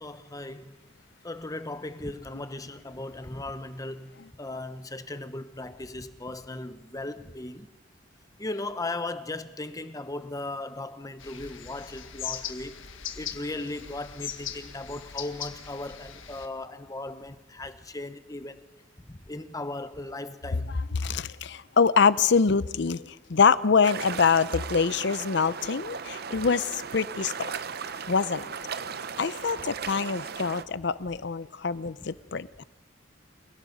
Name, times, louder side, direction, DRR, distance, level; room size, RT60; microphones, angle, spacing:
voice 1, 0.0-0.7 1.2-7.7 8.4-12.7 13.2-18.6 19.1-20.7, left 2 dB, 20° left, 1.0 m, -37 dB
sound 1, 11.2-16.5, left 9 dB, 85° left, 1.7 m, -39 dB
voice 2, 20.7-27.5 28.1-28.5 29.2-32.6, left 5 dB, 60° left, 0.6 m, -25 dB
sound 2, 23.8-30.6, right 6 dB, 55° right, 0.8 m, -37 dB
29.0 x 17.0 x 5.4 m
head